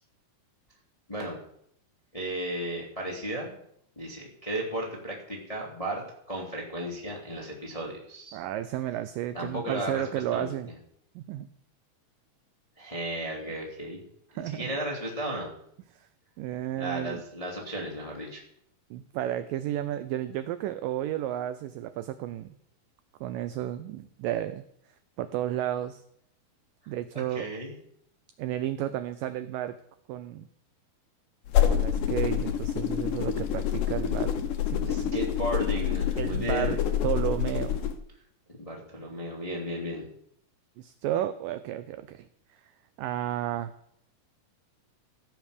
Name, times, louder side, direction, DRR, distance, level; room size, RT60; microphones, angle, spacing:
voice 1, 2.1-3.6 3.9-6.0 6.3-8.4 9.3-10.0 10.3-10.5 12.8-14.0 14.3-15.5 16.7-18.4 27.3-27.7 34.9-36.8 38.6-40.1, equal, 15° left, -2 dB, 1.3 m, -34 dB
voice 2, 8.3-10.7 11.2-11.5 14.4-14.7 16.4-17.2 18.9-22.6 23.2-24.6 25.2-26.0 26.9-27.5 28.4-29.8 30.1-30.5 31.7-34.3 34.7-34.9 36.2-37.8 40.8-42.3 43.0-43.7, right 12 dB, 85° right, 11 dB, 1.9 m, -32 dB
sound 1, 31.5-37.9, left 9 dB, 70° left, 2.3 m, -27 dB
16.0 x 6.1 x 6.6 m, 0.71 s
omnidirectional pair, 4.5 m